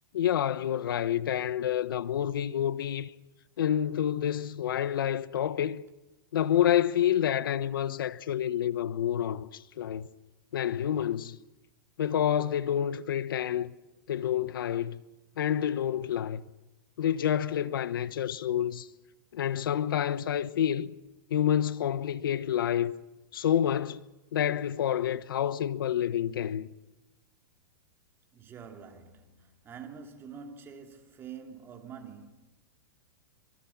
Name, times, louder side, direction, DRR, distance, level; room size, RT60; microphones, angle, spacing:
voice 1, 0.1-3.1 3.6-5.8 6.3-10.1 10.5-11.4 12.0-13.7 14.1-15.0 15.4-16.4 17.0-18.9 19.3-20.9 21.3-22.9 23.3-24.0 24.3-26.7, left 10 dB, 85° left, 1.1 m, -28 dB
voice 2, 28.3-32.3, right 6 dB, 20° right, 2.9 m, -46 dB
26.0 x 24.0 x 5.9 m
supercardioid pair, 150°, 11 cm